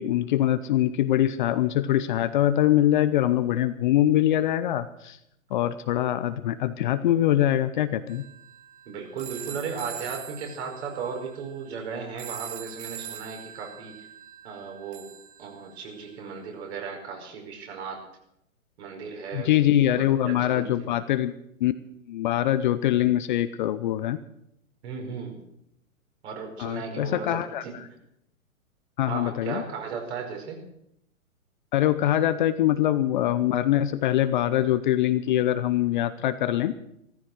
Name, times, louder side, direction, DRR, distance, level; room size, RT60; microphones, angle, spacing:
voice 1, 0.0-5.2 5.5-8.2 19.3-21.3 21.6-21.7 22.1-24.2 26.6-27.6 29.0-29.6 31.7-36.7, left 12 dB, 35° left, 12 dB, 0.7 m, -23 dB
sound 1, 8.1-16.1, right 10 dB, 30° right, 1.4 m, -43 dB
voice 2, 8.9-13.9 14.4-15.0 15.4-18.0 18.8-19.5 19.9-20.9 24.8-25.4 26.2-27.7 29.1-30.6, right 5 dB, 50° right, 2 dB, 5.2 m, -36 dB
16.0 x 14.0 x 6.3 m, 0.77 s
hypercardioid pair, 130°, 42 cm